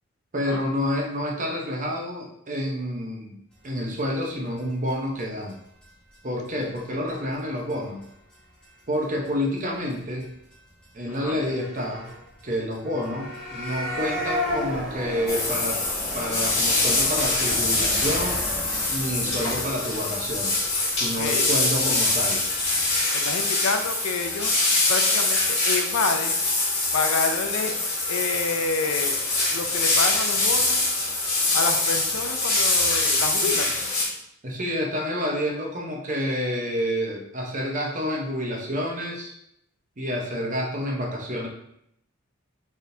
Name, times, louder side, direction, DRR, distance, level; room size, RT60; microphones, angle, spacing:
voice 1, 0.3-3.4 3.6-5.6 6.2-8.0 8.9-10.3 10.9-12.1 12.4-15.8 16.1-18.4 18.9-20.6 20.9-22.4 24.3-24.5 34.4-39.4 40.0-41.5, equal, 40° right, -1 dB, 0.8 m, -29 dB
sound 1, 4.0-4.1 4.3-4.4 4.6-4.7 4.9-5.0 5.2-5.3 5.5-5.6 5.8-6.1 6.4-6.5 6.7-6.8 7.1-7.3 7.7-7.8 8.0-8.7 8.9-9.3 9.6-9.7 9.9-10.0 10.2-10.3 10.5-10.6 10.8-10.9 11.1-23.0, left 1 dB, 5° left, 1.3 m, -35 dB
voice 2, 11.1-11.4 21.0-21.5 23.1-24.5 24.9-26.4 26.9-27.8 28.0-29.2 29.5-30.9 31.5-33.8, left 4 dB, 90° left, 6 dB, 0.5 m, -28 dB
sound 2, 15.3-34.1, left 2 dB, 30° left, 1.2 m, -24 dB
4.2 x 3.5 x 2.6 m, 0.76 s
head